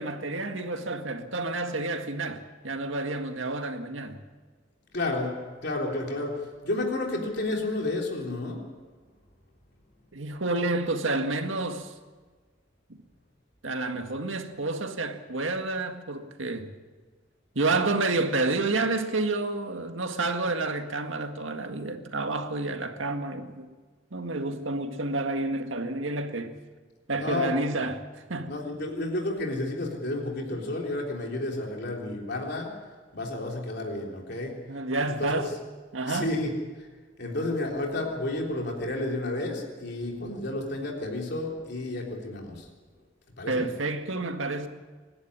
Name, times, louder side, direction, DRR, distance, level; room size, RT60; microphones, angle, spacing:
voice 1, 0.0-4.2 10.1-11.9 12.9-13.0 13.6-16.7 17.6-23.7 24.1-26.5 27.1-28.0 28.3-28.5 34.7-35.5 35.9-36.3 43.5-44.7, right 2 dB, 85° right, 1.9 m, -29 dB
voice 2, 4.9-6.3 6.6-8.6 27.2-27.7 28.5-32.7 33.1-34.5 35.0-35.5 36.1-36.5 36.8-36.9 37.2-42.7 43.4-43.7, left 2 dB, 55° left, 3.6 m, -31 dB
25.0 x 11.5 x 9.8 m
head